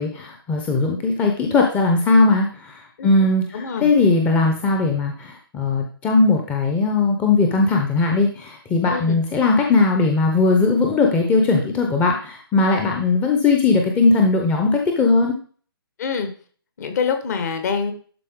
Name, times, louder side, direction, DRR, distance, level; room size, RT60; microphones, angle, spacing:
voice 1, 0.0-15.4, left 3 dB, 10° left, 2 dB, 0.8 m, -19 dB
voice 2, 3.5-3.9 8.9-9.2 16.0-16.3 16.8-17.9, left 6 dB, 45° left, 7 dB, 1.4 m, -25 dB
11.5 x 4.2 x 3.7 m, 0.43 s
figure-of-eight pair, 145°, 13 cm